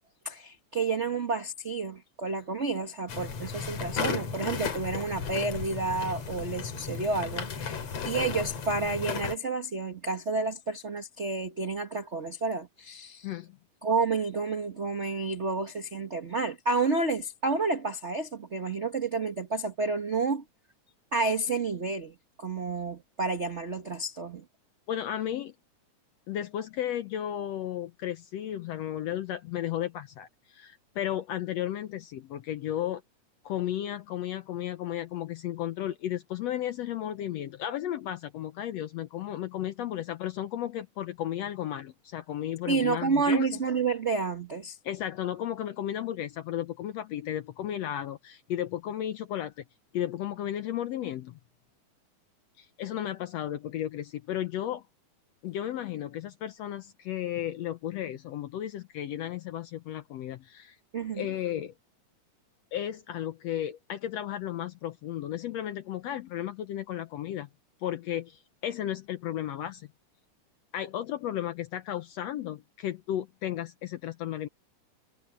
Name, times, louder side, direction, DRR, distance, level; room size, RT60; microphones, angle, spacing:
voice 1, 0.2-13.3 13.8-20.4 21.1-24.4 42.7-44.8 60.9-61.3, right 3 dB, 65° right, 0.6 m, -30 dB
sound 1, 3.1-9.4, left 6 dB, 55° left, 3.2 m, -34 dB
voice 2, 13.2-13.6 24.9-25.5 26.3-33.0 33.4-43.6 44.8-49.6 49.9-51.4 52.6-54.8 55.4-60.8 61.1-61.7 62.7-67.5 67.8-69.9 70.7-74.5, left 11 dB, 70° left, 1.7 m, -34 dB
omnidirectional pair, 3.6 m